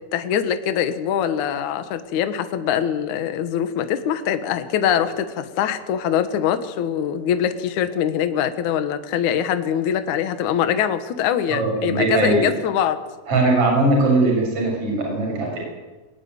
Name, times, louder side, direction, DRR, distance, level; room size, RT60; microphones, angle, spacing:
voice 1, 0.1-13.0, left 9 dB, 85° left, 9 dB, 1.7 m, -23 dB
voice 2, 11.5-12.5 13.3-15.6, right 2 dB, 30° right, 0 dB, 7.4 m, -20 dB
21.0 x 19.5 x 9.5 m, 1.2 s
omnidirectional pair, 5.6 m